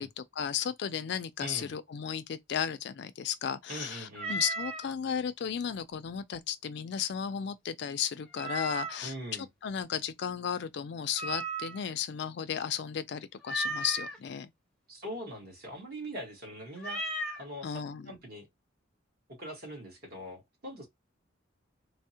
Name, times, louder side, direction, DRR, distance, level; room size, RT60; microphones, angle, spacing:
voice 1, 0.0-9.1 9.6-14.5 17.6-18.1, left 8 dB, 60° left, 0.3 m, -34 dB
voice 2, 1.4-1.7 3.7-4.4 9.0-9.5 14.9-17.0 17.3-17.7 18.0-18.5 19.3-20.9, equal, 50° right, 1.3 m, -42 dB
Meow, 4.1-4.9 8.3-9.1 11.1-11.9 13.4-14.2 16.8-17.4, right 1 dB, 5° left, 0.5 m, -35 dB
3.4 x 2.0 x 2.7 m
head